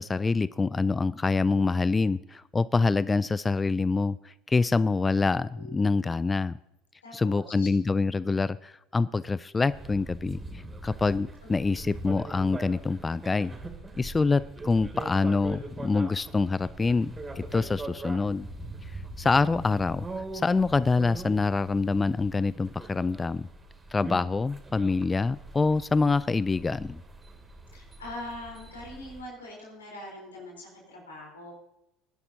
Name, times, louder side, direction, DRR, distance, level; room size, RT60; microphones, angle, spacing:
voice 1, 0.0-6.6 7.1-10.4 10.8-13.5 14.0-18.5 19.2-20.1 20.3-23.5 23.9-27.0, left 4 dB, 20° left, 18 dB, 0.3 m, -26 dB
voice 2, 5.5-5.9 7.0-7.7 11.4-11.5 27.7-31.5, left 1 dB, 90° left, -2 dB, 4.0 m, -42 dB
sound 1, 9.7-29.2, right 2 dB, 20° right, 2.7 m, -42 dB
20.5 x 11.0 x 2.8 m, 0.85 s
hypercardioid pair, 70°, 0 cm